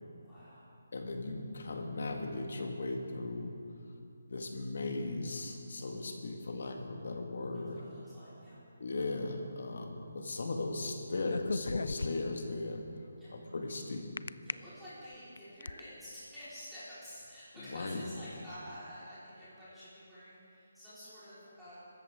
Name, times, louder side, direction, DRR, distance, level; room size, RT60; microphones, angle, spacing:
voice 1, 0.2-0.7 5.9-6.0 7.5-8.6 13.2-13.3 14.4-21.8, equal, ahead, -17 dB, 4.3 m, -50 dB
voice 2, 0.9-3.5 4.3-7.8 8.8-12.8 13.3-14.1 17.7-18.0, left 2 dB, 55° left, 3 dB, 1.8 m, -37 dB
sound 1, 11.2-12.5 14.2-14.5 15.1-15.8, left 3 dB, 70° left, 0.3 m, -36 dB
25.5 x 14.0 x 3.7 m, 2.5 s
hypercardioid pair, 180°, 0 cm